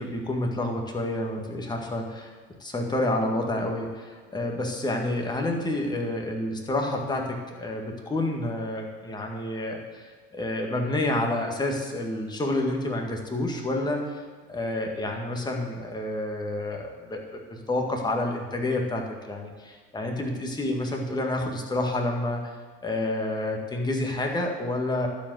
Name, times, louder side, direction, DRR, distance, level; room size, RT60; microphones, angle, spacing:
voice 1, 0.0-2.3 2.6-14.2 14.5-22.5 22.8-25.1, left 1 dB, 15° left, 1 dB, 1.8 m, -29 dB
12.0 x 5.0 x 8.0 m, 1.4 s
supercardioid pair, 105°, 30 cm